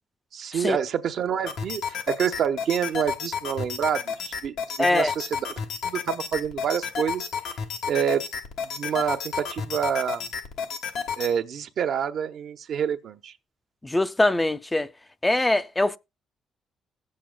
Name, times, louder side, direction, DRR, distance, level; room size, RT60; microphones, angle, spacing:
voice 1, 0.3-5.5 5.8-7.3 7.9-8.3 8.6-10.3 11.2-13.3, right 8 dB, 65° right, 0.7 m, -27 dB
sound 1, 1.5-11.3, left 6 dB, 85° left, 1.2 m, -32 dB
voice 2, 4.8-5.1 13.8-14.9 15.2-16.0, left 2 dB, 15° left, 0.4 m, -22 dB
16.5 x 7.5 x 2.2 m
cardioid pair, 90°, 0 cm